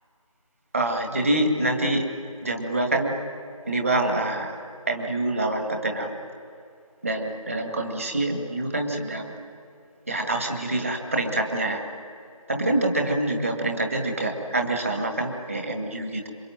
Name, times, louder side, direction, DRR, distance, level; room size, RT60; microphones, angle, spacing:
voice 1, 0.7-2.0 2.4-3.1 3.7-4.5 4.9-6.1 7.0-9.3 10.1-11.8 12.5-16.3, right 2 dB, 25° right, 3 dB, 2.1 m, -26 dB
27.0 x 23.5 x 9.0 m, 2.5 s
figure-of-eight pair, 170°, 18 cm